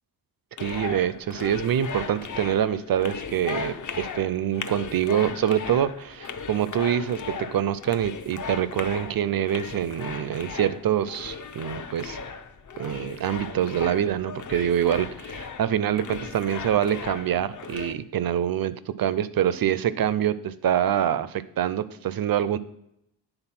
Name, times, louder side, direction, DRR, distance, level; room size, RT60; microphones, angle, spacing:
sound 1, 0.6-17.9, left 5 dB, 50° left, 0.6 m, -37 dB
voice 1, 0.6-12.2 12.8-22.6, right 10 dB, 65° right, 16 dB, 0.5 m, -25 dB
8.9 x 4.0 x 5.8 m, 0.79 s
wide cardioid pair, 120°, 39 cm